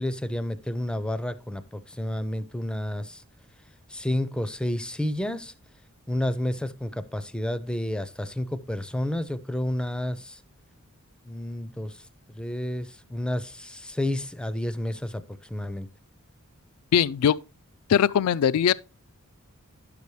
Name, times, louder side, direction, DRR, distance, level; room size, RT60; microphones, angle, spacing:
voice 1, 0.0-3.2 3.9-5.5 6.1-10.4 11.3-12.0 12.3-15.2 15.5-15.9, left 1 dB, 5° left, 0.4 m, -30 dB
voice 2, 16.9-17.4 17.9-18.7, left 8 dB, 75° left, 0.3 m, -20 dB
10.5 x 6.8 x 3.2 m
head